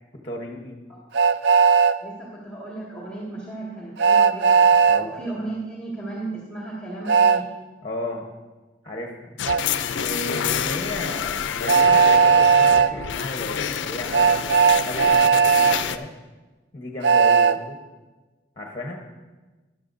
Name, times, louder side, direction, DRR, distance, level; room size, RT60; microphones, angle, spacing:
voice 1, 0.2-0.8 4.9-5.2 7.8-8.2 8.8-9.3 9.9-14.3 14.8-16.1 16.7-17.8 18.6-19.0, left 1 dB, 30° left, 1 dB, 1.0 m, -34 dB
Train, 1.1-1.9 4.0-5.0 7.1-7.4 9.5-9.6 11.7-12.9 14.1-15.8 17.0-17.6, right 5 dB, 65° right, 0.4 m, -16 dB
voice 2, 2.0-4.7 5.0-7.4, right 2 dB, 5° left, -6 dB, 1.9 m, -35 dB
sound 1, 9.4-16.0, left 8 dB, 90° left, 0.5 m, -28 dB
13.0 x 10.5 x 2.6 m, 1.2 s
head